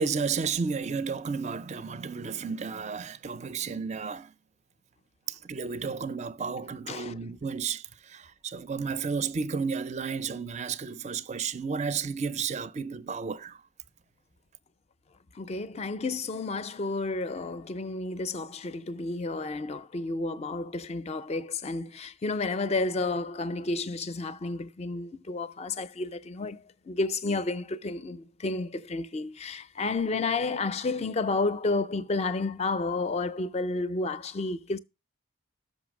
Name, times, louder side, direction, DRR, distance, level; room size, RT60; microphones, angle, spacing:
voice 1, 0.0-4.3 5.3-13.6, right 5 dB, 35° right, 0.4 m, -32 dB
voice 2, 6.9-7.2 15.3-34.8, left 3 dB, 30° left, 0.4 m, -31 dB
6.4 x 5.2 x 6.1 m
head